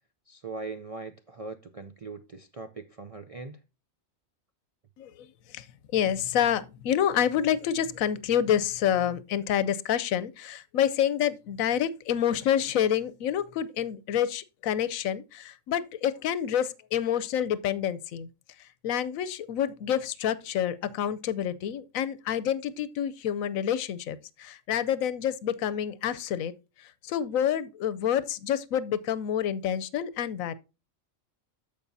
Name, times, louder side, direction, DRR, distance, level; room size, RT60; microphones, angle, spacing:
voice 1, 0.3-3.6, right 3 dB, 50° right, 0.4 m, -40 dB
voice 2, 5.0-5.6 5.9-18.3 18.8-26.5 26.8-30.5, left 9 dB, 90° left, 1.1 m, -28 dB
14.0 x 5.2 x 2.6 m
omnidirectional pair, 1.4 m